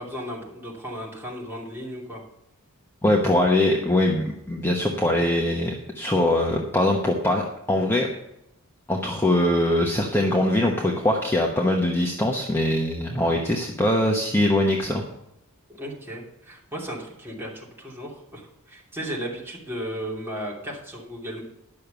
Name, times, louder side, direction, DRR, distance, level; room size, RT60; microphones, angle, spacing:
voice 1, 0.0-2.2 15.8-21.4, equal, 10° right, -4 dB, 2.8 m, -35 dB
voice 2, 3.0-7.4 7.7-8.1 8.9-15.0, left 1 dB, 10° left, 0 dB, 1.0 m, -22 dB
10.5 x 6.6 x 6.8 m, 0.86 s
head